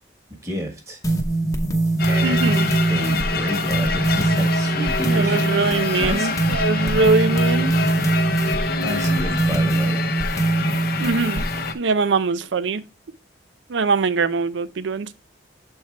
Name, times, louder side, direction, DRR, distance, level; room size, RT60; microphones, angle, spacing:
voice 1, 0.4-1.0 2.1-2.6 2.9-5.5 6.0-6.3 8.8-10.0, right 1 dB, 15° right, 1.3 m, -30 dB
sound 1, 1.0-11.7, right 2 dB, 20° left, 0.8 m, -22 dB
sound 2, 2.0-11.7, left 4 dB, 50° left, 0.6 m, -27 dB
voice 2, 2.2-2.7 5.1-7.7 11.0-11.5 11.7-12.8 13.7-15.1, right 4 dB, 80° right, 0.5 m, -22 dB
7.3 x 4.4 x 3.2 m
head